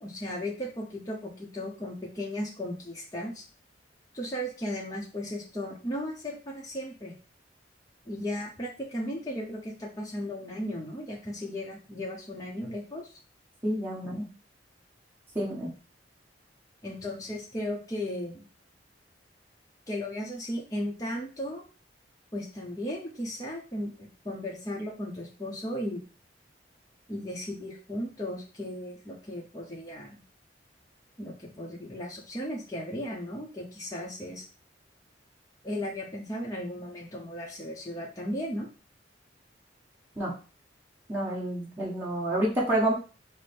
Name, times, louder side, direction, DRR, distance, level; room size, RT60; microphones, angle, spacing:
voice 1, 0.0-3.4 4.1-7.2 8.1-13.0 16.8-18.5 19.9-21.6 22.3-26.0 27.1-30.2 31.2-34.4 35.6-38.7, left 1 dB, 20° left, -3 dB, 0.8 m, -36 dB
voice 2, 13.6-14.3 15.3-15.7 40.2-40.3 41.1-42.9, right 1 dB, 10° right, -6 dB, 1.2 m, -28 dB
4.9 x 2.1 x 4.2 m, 0.35 s
head